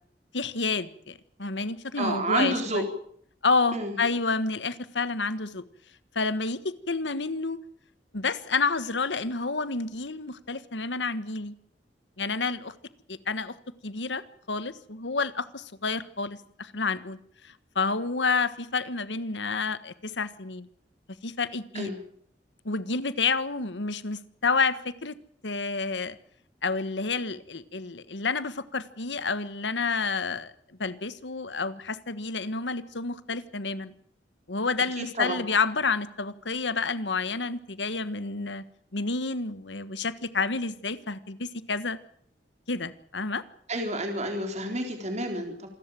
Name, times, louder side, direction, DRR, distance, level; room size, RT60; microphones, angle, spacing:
voice 1, 0.3-2.8 3.4-5.6 6.1-7.6 8.1-11.5 12.2-12.7 13.1-13.6 13.8-17.2 17.4-20.7 21.2-21.9 22.6-25.2 25.4-26.2 26.6-30.5 30.8-33.9 34.5-38.6 38.9-42.0 42.7-43.4, left 4 dB, 90° left, 14 dB, 1.5 m, -29 dB
voice 2, 2.0-2.9 3.7-3.9 21.7-22.0 35.0-35.4 43.7-45.7, right 1 dB, 40° right, 4 dB, 3.8 m, -29 dB
27.0 x 14.0 x 9.1 m, 0.65 s
head